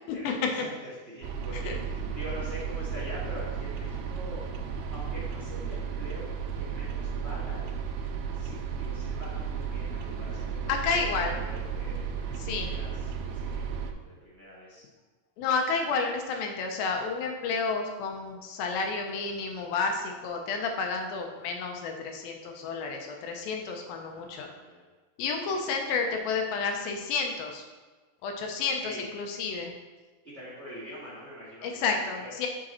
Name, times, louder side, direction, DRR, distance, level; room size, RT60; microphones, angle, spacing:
voice 1, 0.1-4.4 4.7-6.3 6.5-7.6 8.3-14.8 24.0-24.9 25.5-25.6 28.8-29.1 30.2-32.3, equal, 30° right, -9 dB, 1.3 m, -44 dB
sound 1, 1.2-13.9, right 6 dB, 85° right, 2.5 m, -34 dB
voice 2, 10.7-11.4 12.4-12.8 15.4-24.5 25.2-27.7 28.2-29.7 31.6-32.5, left 4 dB, 80° left, 3 dB, 2.4 m, -31 dB
5.9 x 5.1 x 4.2 m, 1.3 s
omnidirectional pair, 4.2 m